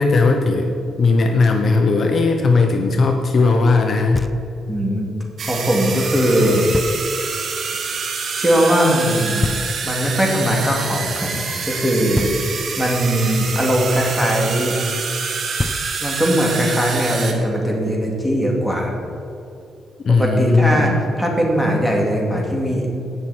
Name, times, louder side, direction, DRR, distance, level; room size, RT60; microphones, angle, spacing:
voice 1, 0.0-4.3 20.0-21.0, left 3 dB, 50° left, 3 dB, 1.0 m, -17 dB
Knock, 4.1-4.8 6.7-7.4 9.4-10.2 12.1-12.9 15.2-15.3 15.6-16.4, left 2 dB, 20° left, 0.4 m, -28 dB
voice 2, 4.7-5.1 5.5-6.7 8.3-9.5 9.8-11.3 11.6-14.8 16.0-19.0 20.1-22.9, equal, 5° right, -2 dB, 2.7 m, -19 dB
sound 1, 5.4-17.3, right 5 dB, 55° right, 1.5 m, -27 dB
17.0 x 6.2 x 4.4 m, 2.8 s
cardioid pair, 90°, 0 cm